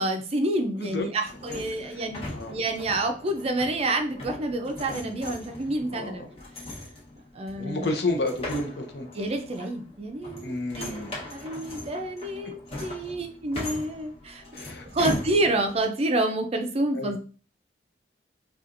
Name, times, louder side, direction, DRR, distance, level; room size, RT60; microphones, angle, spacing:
voice 1, 0.0-2.2 2.5-6.3 7.3-7.9 9.1-14.4 14.9-17.2, right 2 dB, 35° right, 5 dB, 0.4 m, -28 dB
sound 1, 1.2-15.8, left 1 dB, 35° left, 1.0 m, -40 dB
voice 2, 5.9-6.2 7.6-9.1 10.4-11.1 14.5-15.2 16.9-17.2, left 2 dB, 65° left, 4 dB, 0.7 m, -31 dB
4.2 x 2.4 x 2.5 m, 0.38 s
head